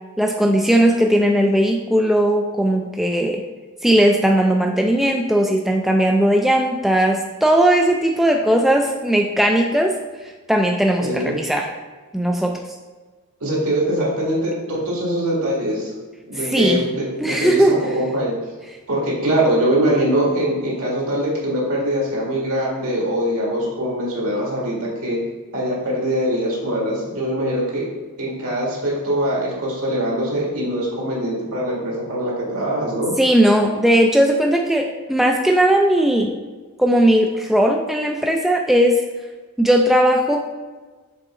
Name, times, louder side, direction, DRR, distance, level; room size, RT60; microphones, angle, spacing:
voice 1, 0.2-3.4 3.8-9.9 10.2-11.7 12.1-12.6 16.4-16.8 17.2-17.8 33.2-36.3 36.8-39.0 39.6-40.5, right 1 dB, ahead, 1 dB, 0.3 m, -17 dB
voice 2, 11.0-11.4 13.4-15.9 16.3-18.4 18.9-25.2 25.5-27.9 28.2-33.1, right 1 dB, 70° right, -4 dB, 1.9 m, -22 dB
6.8 x 4.0 x 3.7 m, 1.3 s
head